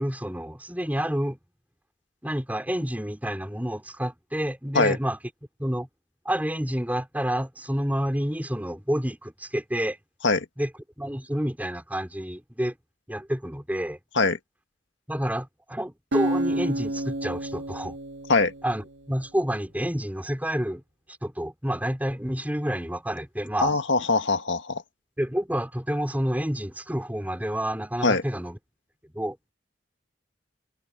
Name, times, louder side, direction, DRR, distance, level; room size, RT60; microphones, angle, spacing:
voice 1, 0.0-1.4 2.2-5.2 5.6-5.9 6.2-10.0 10.6-10.7 11.0-12.8 13.1-14.0 15.1-18.0 18.6-20.8 21.2-23.7 25.2-28.6 29.0-29.4, equal, 10° right, 4.7 m, -29 dB
Acoustic guitar, 16.1-19.3, right 1 dB, 75° right, 2.7 m, -30 dB
voice 2, 23.6-24.8 28.0-28.2, left 3 dB, 75° left, 1.8 m, -22 dB
head